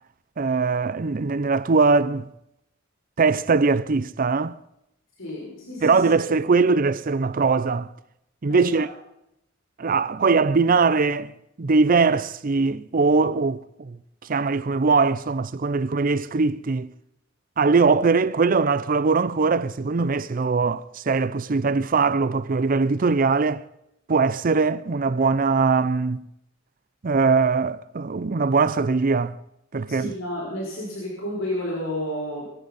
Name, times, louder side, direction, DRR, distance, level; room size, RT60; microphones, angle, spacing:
voice 1, 0.4-2.3 3.2-4.6 5.8-7.9 8.4-8.9 9.8-11.3 11.6-14.0 14.3-16.9 17.6-23.6 24.1-26.2 27.0-29.4 29.7-30.1, right 4 dB, 45° right, 0.5 m, -21 dB
voice 2, 5.2-6.1 8.5-8.9 29.9-32.5, left 1 dB, 85° left, 6.3 m, -31 dB
22.0 x 15.5 x 4.1 m
head